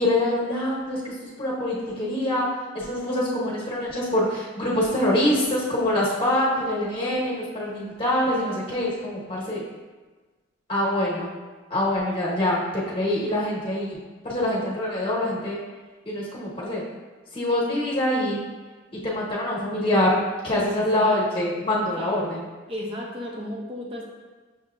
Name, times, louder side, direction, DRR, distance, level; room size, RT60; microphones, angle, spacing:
voice 1, 0.0-2.5 2.7-9.6 10.7-11.3 11.7-12.6 12.9-15.6 16.0-16.8 17.3-18.4 18.9-20.1 20.4-22.4, left 1 dB, 30° left, -7 dB, 1.0 m, -25 dB
voice 2, 20.7-21.4 22.0-22.1 22.7-24.0, left 1 dB, 30° right, -2 dB, 0.6 m, -35 dB
6.3 x 2.8 x 2.4 m, 1.3 s
head